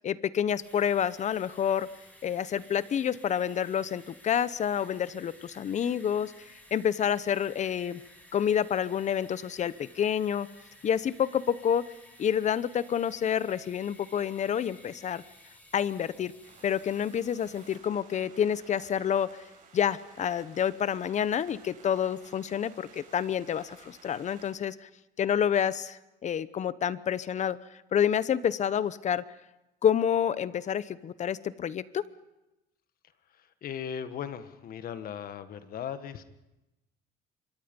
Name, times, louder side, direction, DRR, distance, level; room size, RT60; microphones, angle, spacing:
voice 1, 0.0-1.9 2.2-6.3 6.7-8.0 8.3-10.5 10.8-11.8 12.2-15.2 15.7-16.3 16.6-19.3 19.7-24.9 25.2-27.6 27.9-29.2 29.8-32.0, left 8 dB, 45° left, 17 dB, 0.9 m, -28 dB
sound 1, 0.6-17.8, equal, 10° left, 6.3 m, -55 dB
sound 2, 16.4-24.5, right 5 dB, 50° right, 7.1 m, -55 dB
voice 2, 33.3-36.2, left 8 dB, 60° left, 11 dB, 1.5 m, -38 dB
25.5 x 22.5 x 5.4 m, 0.96 s
cardioid pair, 110°, 17 cm